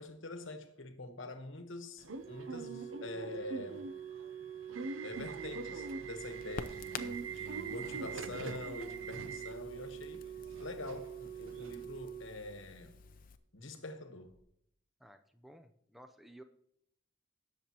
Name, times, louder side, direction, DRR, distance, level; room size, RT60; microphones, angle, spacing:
voice 1, 0.0-3.9 5.0-10.3 10.6-12.9 13.5-14.4, left 2 dB, 70° left, 1.1 m, -45 dB
Subway metro underground / Alarm, 2.0-11.8, right 4 dB, 75° right, 0.6 m, -44 dB
Organ, 2.2-13.1 14.2-14.4, right 9 dB, 50° right, 1.4 m, -46 dB
Crackle, 5.1-13.4, left 5 dB, 45° left, 0.6 m, -51 dB
voice 2, 15.0-16.4, right 1 dB, ahead, 0.5 m, -56 dB
18.0 x 6.9 x 2.9 m
head